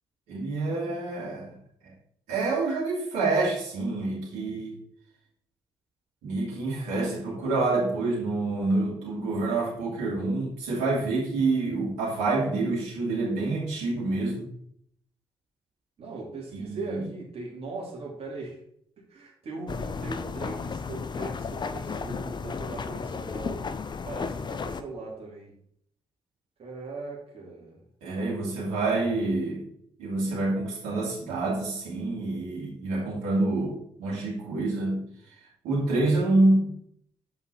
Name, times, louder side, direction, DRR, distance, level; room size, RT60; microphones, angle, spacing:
voice 1, 0.3-1.6 1.8-1.9 2.3-4.8 6.2-14.5 16.5-17.0 28.0-29.6 30.0-35.0 35.6-36.7, right 2 dB, 75° right, -5 dB, 2.5 m, -27 dB
voice 2, 16.0-18.6 19.1-23.7 24.0-25.5 26.6-27.8, right 3 dB, 55° right, -4 dB, 3.2 m, -39 dB
sound 1, 19.7-24.8, left 5 dB, 40° left, 0.6 m, -34 dB
6.9 x 5.4 x 4.1 m, 0.67 s
hypercardioid pair, 40°, 12 cm